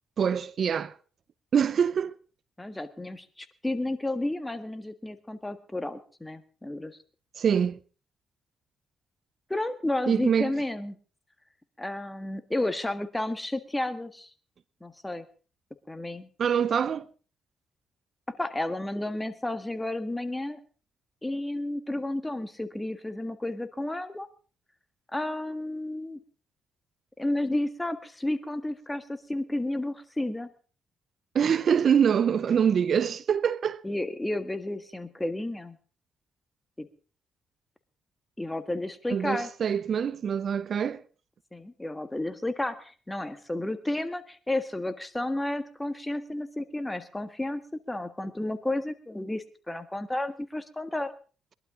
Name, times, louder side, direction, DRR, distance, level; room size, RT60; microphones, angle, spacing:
voice 1, 0.2-0.9 1.5-2.2 7.4-7.8 10.1-10.5 16.4-17.1 31.3-33.8 39.1-41.0, right 7 dB, 60° right, 0.6 m, -24 dB
voice 2, 2.6-7.0 9.5-11.0 11.8-14.3 14.8-15.2 15.9-16.3 18.3-20.6 21.2-24.3 25.1-26.2 27.2-30.5 33.8-35.8 36.8-36.9 38.4-39.5 41.5-51.1, left 1 dB, 15° left, 1.6 m, -32 dB
21.5 x 12.0 x 3.8 m
supercardioid pair, 65°, 0 cm